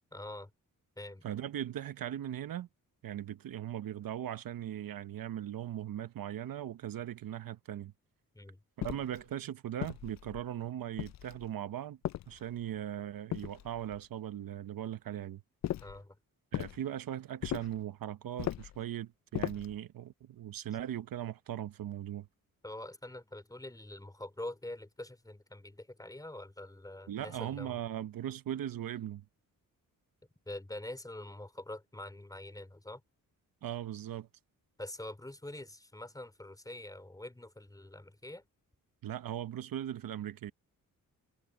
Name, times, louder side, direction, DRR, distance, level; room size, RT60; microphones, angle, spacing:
voice 1, 0.1-0.5 1.0-1.2 8.3-8.6 15.8-16.2 22.6-27.8 30.5-33.0 34.8-38.4, left 1 dB, 10° left, 3.7 m, -45 dB
voice 2, 1.2-2.7 3.0-7.9 8.8-12.0 12.3-15.4 16.5-22.3 27.1-29.2 33.6-34.3 39.0-40.5, right 11 dB, 75° right, 1.0 m, -39 dB
sound 1, 8.8-9.2 9.8-10.5 11.0-11.5 12.0-12.7 13.3-14.0 15.6-16.0 16.5-16.8 17.4-17.8 18.4-18.8 19.3-19.8, left 12 dB, 50° left, 0.4 m, -38 dB
cardioid pair, 110°, 35 cm